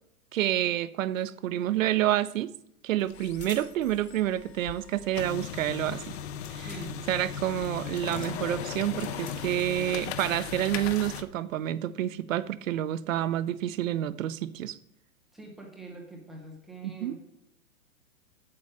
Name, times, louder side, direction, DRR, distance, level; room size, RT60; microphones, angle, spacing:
voice 1, 0.3-2.5 2.8-6.1 6.5-6.7 7.1-14.8 16.8-17.2, right 12 dB, 65° right, 0.7 m, -29 dB
sound 1, 1.1-1.3 1.6-2.3 3.0-3.7 5.0-9.9, left 6 dB, 15° left, 1.1 m, -51 dB
sound 2, 3.1-11.2, left 8 dB, 50° left, 0.8 m, -38 dB
voice 2, 6.6-7.0 15.3-17.2, right 2 dB, ahead, 0.3 m, -44 dB
8.7 x 7.3 x 4.8 m
hypercardioid pair, 140°, 43 cm